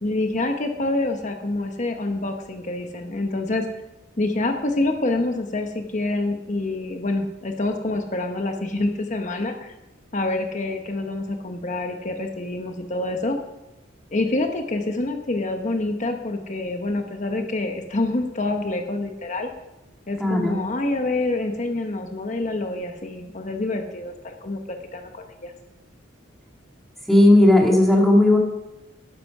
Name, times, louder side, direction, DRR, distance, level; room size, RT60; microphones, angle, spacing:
voice 1, 0.0-3.6 4.2-9.7 10.1-13.4 14.1-19.5 20.1-25.5, left 2 dB, 40° left, 5 dB, 1.0 m, -26 dB
voice 2, 20.2-20.6 27.1-28.4, left 1 dB, ahead, -2 dB, 2.0 m, -15 dB
12.5 x 11.0 x 4.8 m, 0.98 s
head